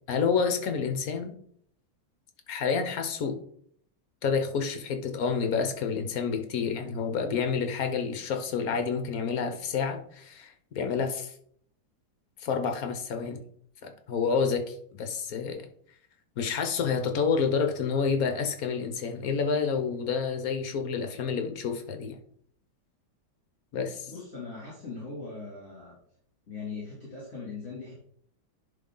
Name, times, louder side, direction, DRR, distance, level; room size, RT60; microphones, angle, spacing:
voice 1, 0.1-1.3 2.5-3.4 4.2-11.3 12.4-13.4 13.8-15.7 16.4-22.2 23.7-24.1, left 5 dB, 60° left, 7 dB, 1.3 m, -29 dB
voice 2, 24.1-26.0 26.5-27.9, left 4 dB, 35° left, -8 dB, 3.1 m, -40 dB
11.0 x 3.7 x 3.8 m, 0.64 s
omnidirectional pair, 1.9 m